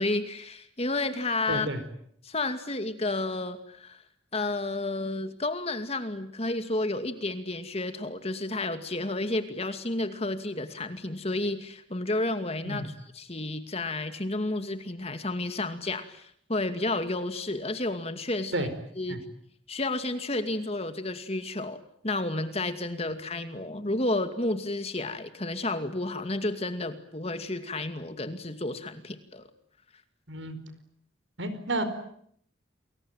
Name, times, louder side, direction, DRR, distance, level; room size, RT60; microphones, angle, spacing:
voice 1, 0.0-1.7 2.2-4.0 4.3-18.7 19.0-19.2 19.7-29.5, left 2 dB, 30° left, 9 dB, 2.4 m, -31 dB
voice 2, 1.5-1.8 12.6-12.9 18.5-18.7 19.1-19.2 30.3-30.6 31.4-31.8, right 1 dB, 70° right, 11 dB, 4.7 m, -31 dB
29.5 x 22.0 x 9.1 m, 0.67 s
head